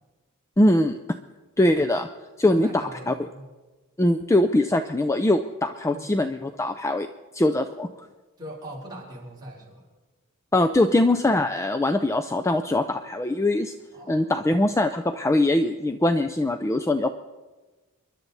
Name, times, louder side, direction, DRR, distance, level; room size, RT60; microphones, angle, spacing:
voice 1, 0.6-1.2 1.6-2.1 2.4-3.1 4.0-7.1 7.3-7.9 10.5-13.7 14.1-17.1, left 1 dB, 15° left, 8 dB, 0.4 m, -22 dB
voice 2, 2.4-3.4 5.9-6.0 8.4-9.8 13.9-14.3, right 1 dB, 20° right, -3 dB, 3.8 m, -40 dB
27.5 x 11.5 x 4.1 m, 1.2 s
head